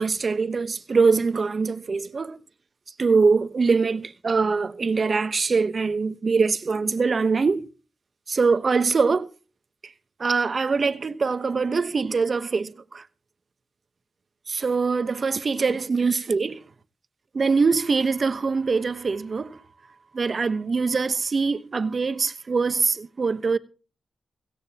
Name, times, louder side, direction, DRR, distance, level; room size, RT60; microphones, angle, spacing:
voice 1, 0.0-2.4 3.0-7.7 8.3-9.3 10.2-13.0 14.5-16.6 17.3-19.6 20.1-23.6, right 4 dB, 55° right, 1.0 m, -23 dB
17.0 x 16.0 x 2.9 m
cardioid pair, 50°, 0 cm